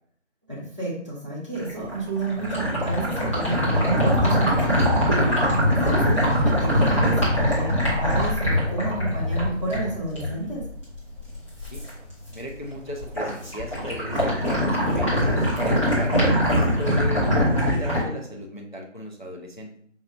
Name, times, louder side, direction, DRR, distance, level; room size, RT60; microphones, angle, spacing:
voice 1, 0.5-5.1 5.8-10.6, right 2 dB, 25° right, -6 dB, 1.0 m, -30 dB
sound 1, 1.6-11.9 12.3-12.7 13.0-18.0, equal, 25° left, 1.2 m, -22 dB
voice 2, 12.3-16.3 16.8-19.7, equal, 40° left, 0 dB, 0.4 m, -36 dB
5.3 x 2.8 x 2.4 m, 0.62 s
figure-of-eight pair, 165°, 38 cm